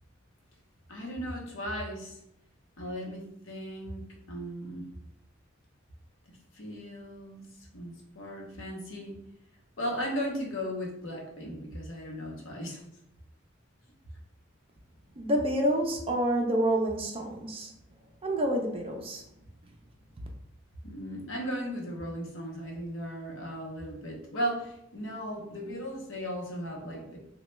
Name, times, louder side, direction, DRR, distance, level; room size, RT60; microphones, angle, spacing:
voice 1, 0.9-2.2 2.8-4.9 6.5-7.5 7.7-9.2 9.8-12.8 20.8-27.2, equal, 75° left, -1 dB, 0.8 m, -36 dB
voice 2, 15.2-17.7 18.2-19.2, right 1 dB, 25° right, 2 dB, 0.4 m, -28 dB
3.1 x 2.2 x 3.1 m, 0.77 s
head